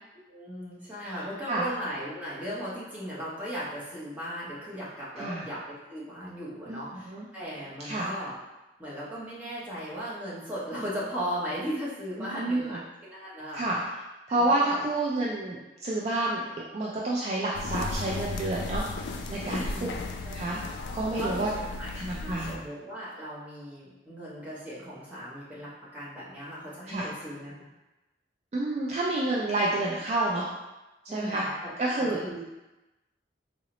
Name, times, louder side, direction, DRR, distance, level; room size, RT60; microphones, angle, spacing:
voice 1, 0.3-8.3 8.8-13.6 14.3-14.9 19.4-20.0 21.2-27.7 31.1-31.5 31.8-32.4, equal, 10° right, -9 dB, 0.9 m, -37 dB
voice 2, 6.7-7.3 7.8-8.1 12.2-12.8 13.5-13.8 14.3-16.5 16.7-19.7 20.2-20.6 20.9-21.5 22.0-22.6 26.9-27.1 28.5-30.5 31.1-31.4 31.8-32.2, right 2 dB, 35° right, -5 dB, 0.3 m, -29 dB
sound 1, 17.5-22.6, left 3 dB, 75° left, 0.3 m, -35 dB
3.8 x 2.0 x 2.9 m, 1.0 s
head